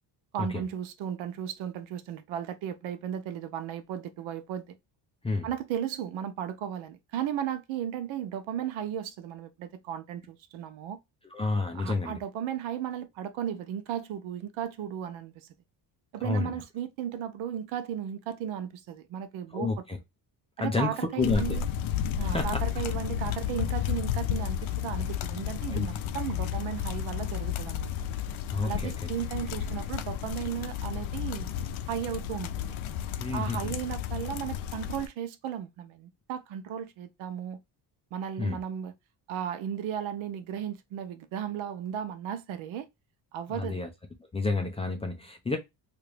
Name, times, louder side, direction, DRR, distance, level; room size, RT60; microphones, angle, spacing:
voice 1, 0.3-4.8 5.4-11.0 11.7-15.5 16.1-19.8 20.6-21.6 22.2-27.9 28.6-31.5 31.9-32.7 33.3-37.6 38.1-38.9 39.3-42.9 43.3-43.8, right 9 dB, 90° right, 0.8 m, -35 dB
voice 2, 11.3-12.2 16.2-16.5 19.5-20.0 20.6-21.6 22.2-22.6 25.7-25.9 28.5-29.1 33.2-33.7 38.4-38.6 43.5-43.9 44.3-45.6, left 3 dB, 15° left, 0.4 m, -30 dB
sound 1, 21.2-35.1, left 9 dB, 85° left, 0.6 m, -32 dB
2.9 x 2.6 x 3.1 m
cardioid pair, 165°, 46 cm